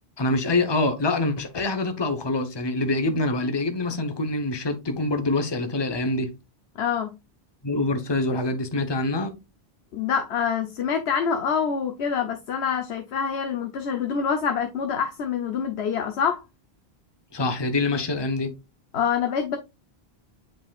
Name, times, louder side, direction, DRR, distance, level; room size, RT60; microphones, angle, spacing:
voice 1, 0.2-6.3 7.6-9.3 17.3-18.5, left 2 dB, 25° left, 0.9 m, -25 dB
voice 2, 6.8-7.1 9.9-16.4 18.9-19.6, left 7 dB, 90° left, 1.0 m, -26 dB
7.9 x 5.1 x 2.4 m
omnidirectional pair, 1.1 m